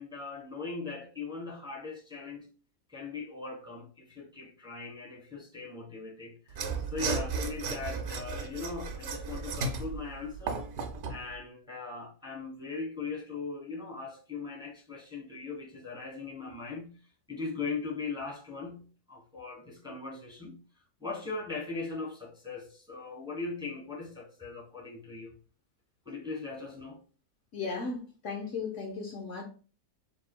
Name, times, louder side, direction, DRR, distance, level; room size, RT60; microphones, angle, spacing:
voice 1, 0.0-2.5 2.9-10.7 11.1-17.0 17.3-20.6 21.0-25.3 26.0-27.0, left 4 dB, 5° right, 1.2 m, -39 dB
Mechanisms / Sawing, 6.5-11.2, right 4 dB, 80° right, 1.2 m, -34 dB
voice 2, 27.5-29.4, left 4 dB, 60° left, 1.0 m, -36 dB
6.6 x 3.2 x 2.2 m
omnidirectional pair, 1.6 m